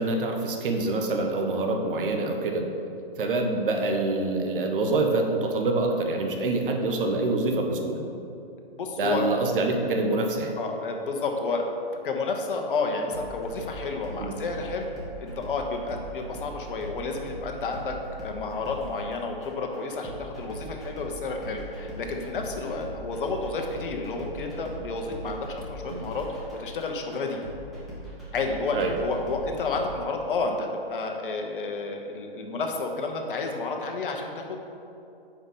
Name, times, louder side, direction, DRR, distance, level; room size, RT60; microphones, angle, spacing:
voice 1, 0.0-2.7 3.2-8.0 9.0-10.5 14.2-14.3 25.9-26.1 28.7-28.9, right 2 dB, 60° right, 2 dB, 1.0 m, -26 dB
voice 2, 8.7-9.3 10.6-11.7 12.0-14.9 15.2-17.9 18.2-27.4 28.3-34.6, left 3 dB, 60° left, 3 dB, 1.0 m, -31 dB
sound 1, 13.1-29.9, right 1 dB, ahead, 1.2 m, -41 dB
5.5 x 4.8 x 5.4 m, 2.7 s
hypercardioid pair, 145°, 31 cm